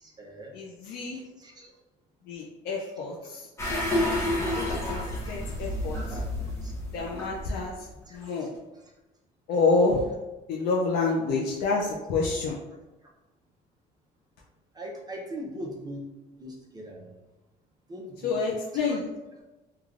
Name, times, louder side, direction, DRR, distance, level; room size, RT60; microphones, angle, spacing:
voice 1, 0.0-0.5 1.1-1.7 3.8-4.0 5.9-6.0 6.6-6.7 8.1-8.2 14.7-16.1 16.4-17.1 17.9-19.0, equal, 25° right, -2 dB, 0.5 m, -41 dB
voice 2, 0.5-1.2 2.3-3.5 4.4-5.0 5.3-6.2 6.9-7.7 8.1-8.5 9.5-10.1 10.5-12.6 18.2-19.0, left 3 dB, 80° left, -3 dB, 0.4 m, -28 dB
sound 1, 3.6-7.8 8.2-8.3, left 1 dB, 15° left, 0.7 m, -30 dB
3.2 x 2.2 x 2.4 m, 1.0 s
cardioid pair, 110°, 17 cm